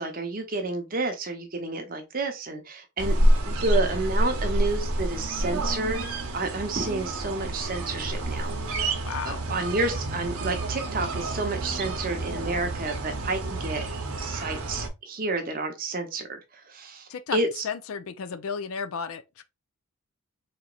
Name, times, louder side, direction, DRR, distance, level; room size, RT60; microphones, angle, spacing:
voice 1, 0.0-6.1 6.3-8.9 9.2-13.8 14.2-16.4 16.7-17.6, right 3 dB, 40° right, 0.7 m, -30 dB
sound 1, 3.0-14.9, right 1 dB, 80° right, 0.8 m, -28 dB
voice 2, 9.0-9.5 17.1-17.4 17.6-19.4, left 6 dB, 70° left, 0.4 m, -33 dB
4.0 x 2.9 x 2.4 m
head